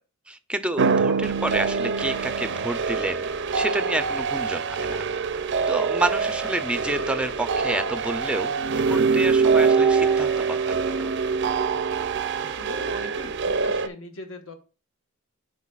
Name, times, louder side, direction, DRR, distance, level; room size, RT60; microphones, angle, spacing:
voice 1, 0.3-3.3 3.5-5.0 5.7-11.1, right 2 dB, 5° right, 10 dB, 0.5 m, -29 dB
sound 1, 0.8-13.9, right 5 dB, 55° right, 0.5 m, -24 dB
voice 2, 12.4-14.5, left 1 dB, 65° left, 5 dB, 1.4 m, -40 dB
12.5 x 4.5 x 2.4 m, 0.34 s
head